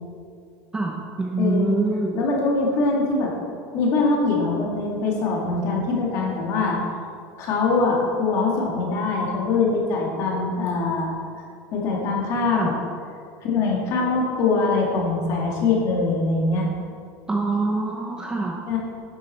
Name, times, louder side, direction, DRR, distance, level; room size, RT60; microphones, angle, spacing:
voice 1, 0.7-2.2 12.5-12.7 17.3-18.6, right 2 dB, 10° right, -1 dB, 0.6 m, -25 dB
voice 2, 1.4-1.8 2.1-3.3 3.7-6.8 7.4-11.1 11.7-12.7 13.4-16.7 18.7-18.8, left 3 dB, 35° left, -2 dB, 2.0 m, -23 dB
10.5 x 7.6 x 4.2 m, 2.3 s
supercardioid pair, 170°, 8 cm